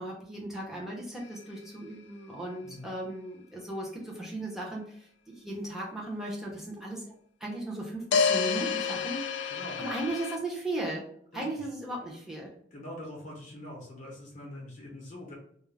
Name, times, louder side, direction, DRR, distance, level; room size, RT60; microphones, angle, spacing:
voice 1, 0.0-7.0 7.4-9.5 9.8-11.0 11.3-12.5, right 1 dB, ahead, -4 dB, 0.7 m, -36 dB
sound 1, 1.2-1.3 8.1-10.4, left 6 dB, 75° left, 0.3 m, -28 dB
voice 2, 9.5-9.9 11.3-11.7 12.7-15.3, left 1 dB, 45° left, -2 dB, 0.7 m, -44 dB
2.4 x 2.1 x 3.2 m, 0.66 s
head